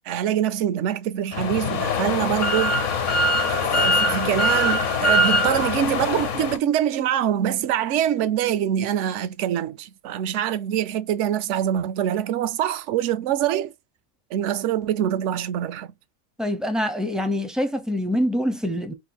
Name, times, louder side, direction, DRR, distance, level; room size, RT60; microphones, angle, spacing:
voice 1, 0.1-2.8 3.5-13.7 14.3-15.9, right 10 dB, 65° right, 0.8 m, -24 dB
sound 1, 1.3-6.6, left 2 dB, 65° left, 1.2 m, -22 dB
voice 2, 16.4-18.9, equal, ahead, 0.5 m, -25 dB
4.8 x 2.6 x 4.2 m
omnidirectional pair, 1.5 m